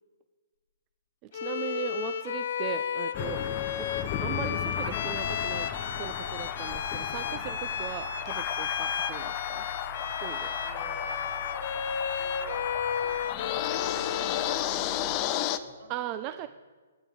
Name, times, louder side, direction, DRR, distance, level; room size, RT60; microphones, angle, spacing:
voice 1, 1.2-3.4 3.8-5.7 6.0-9.7 10.2-10.6 15.9-16.5, right 13 dB, 25° right, 11 dB, 0.4 m, -38 dB
Bowed string instrument, 1.3-14.7, left 7 dB, 55° left, 1.0 m, -33 dB
sound 1, 3.1-15.6, left 12 dB, 25° left, 0.6 m, -34 dB
Bus, 4.6-15.2, right 3 dB, 80° right, 5.0 m, -47 dB
voice 2, 10.6-11.3 12.2-15.3 15.6-16.5, right 1 dB, 60° right, 0 dB, 4.0 m, -53 dB
17.5 x 9.0 x 4.9 m, 1.4 s
hypercardioid pair, 155°, 0 cm